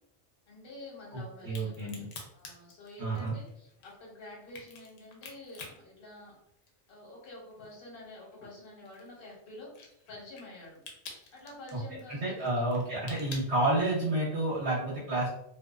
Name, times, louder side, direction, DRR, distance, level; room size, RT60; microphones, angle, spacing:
voice 1, 0.5-1.9 2.3-6.3 6.9-10.8 11.3-12.6, left 1 dB, 55° left, -2 dB, 1.0 m, -48 dB
voice 2, 1.1-2.0 3.0-3.3 12.1-15.3, right 2 dB, 70° right, -8 dB, 1.1 m, -30 dB
Crack, 1.4-6.9 7.2-14.3, left 4 dB, 75° left, 0.8 m, -49 dB
2.5 x 2.2 x 2.3 m, 0.77 s
omnidirectional pair, 1.2 m